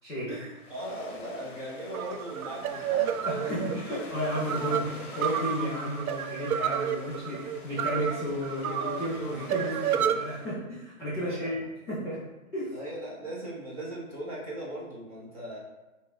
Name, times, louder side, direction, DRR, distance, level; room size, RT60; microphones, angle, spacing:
voice 1, 0.3-3.1 3.4-3.5 9.9-10.1 11.2-11.6 12.7-15.6, right 1 dB, 25° right, -5 dB, 0.9 m, -39 dB
sound 1, 0.6-10.5, left 3 dB, 45° left, 1.0 m, -47 dB
sound 2, 1.9-10.2, right 9 dB, 75° right, 0.5 m, -31 dB
voice 2, 3.2-11.6 11.9-12.2 12.5-12.8, equal, ahead, -26 dB, 0.6 m, -33 dB
5.8 x 2.7 x 3.3 m, 1.1 s
hypercardioid pair, 175°, 44 cm